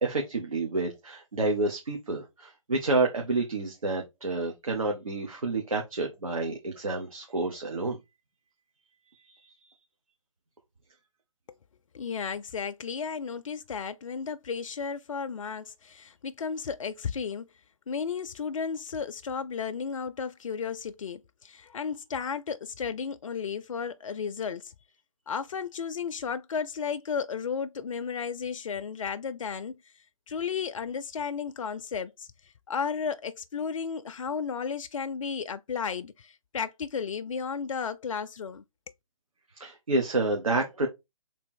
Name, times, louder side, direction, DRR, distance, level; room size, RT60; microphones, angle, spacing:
voice 1, 0.0-8.0 9.3-9.5 39.6-40.9, right 3 dB, 80° right, 1.2 m, -29 dB
voice 2, 11.9-17.5 17.9-24.7 25.3-29.7 30.3-32.3 32.7-38.6, left 6 dB, 70° left, 0.5 m, -33 dB
3.4 x 3.0 x 4.5 m
figure-of-eight pair, 140°, 18 cm